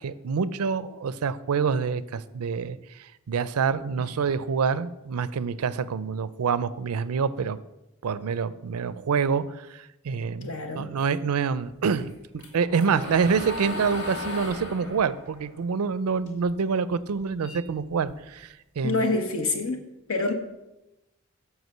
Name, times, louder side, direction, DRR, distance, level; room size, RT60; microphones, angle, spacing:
voice 1, 0.0-2.8 3.3-7.6 8.0-9.4 9.7-12.1 12.5-19.0, right 5 dB, 90° right, 15 dB, 0.4 m, -26 dB
voice 2, 10.4-10.9 18.8-19.8 20.1-20.3, left 3 dB, 70° left, 5 dB, 1.1 m, -26 dB
sound 1, 12.0-16.5 16.9-18.4, left 2 dB, 55° left, 2.5 m, -36 dB
8.0 x 4.9 x 6.5 m, 0.94 s
head